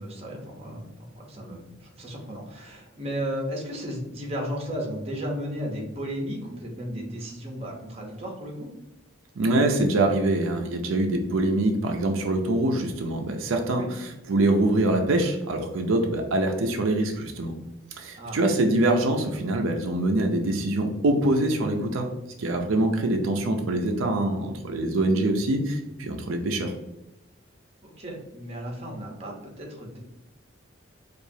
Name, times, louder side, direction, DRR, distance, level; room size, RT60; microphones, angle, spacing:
voice 1, 0.0-8.7 13.7-13.9 18.2-18.4 27.8-30.0, equal, 30° right, 0 dB, 0.8 m, -34 dB
voice 2, 9.4-17.5 17.9-22.1 22.4-26.7, right 2 dB, 85° right, 3 dB, 0.5 m, -24 dB
4.7 x 2.4 x 2.7 m, 0.93 s
head